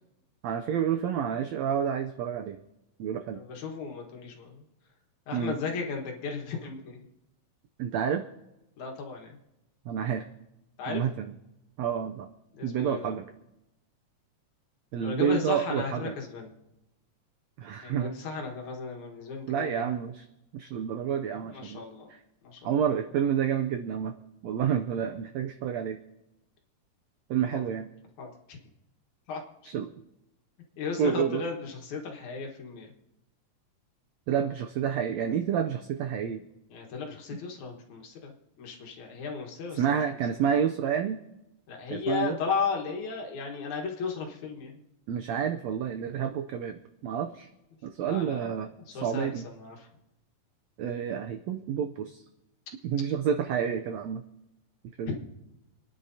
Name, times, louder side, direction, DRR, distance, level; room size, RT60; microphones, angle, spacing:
voice 1, 0.4-2.6 3.0-3.4 5.3-5.6 7.8-8.2 9.8-10.3 10.9-11.3 11.8-12.3 12.6-13.3 14.9-16.1 17.6-18.1 19.5-20.3 20.5-21.8 22.1-22.2 22.6-24.1 24.4-26.0 27.3-27.9 29.6-29.9 31.0-31.4 34.3-36.4 37.3-37.4 39.8-41.2 41.9-42.4 45.1-47.5 47.8-49.4 50.8-52.2 52.8-54.2 55.0-55.1, right 8 dB, 80° right, 7 dB, 1.5 m, -29 dB
voice 2, 3.3-4.6 5.3-7.0 8.8-9.4 10.8-11.0 12.5-13.1 15.0-16.5 17.8-19.9 21.4-22.1 22.4-22.8 27.5-27.6 28.2-28.6 29.3-29.4 30.8-32.9 36.7-40.0 41.7-44.8 48.0-48.5 48.9-49.9 55.1-55.2, left 5 dB, 65° left, 1 dB, 2.8 m, -35 dB
29.0 x 10.5 x 2.8 m, 0.91 s
omnidirectional pair, 3.8 m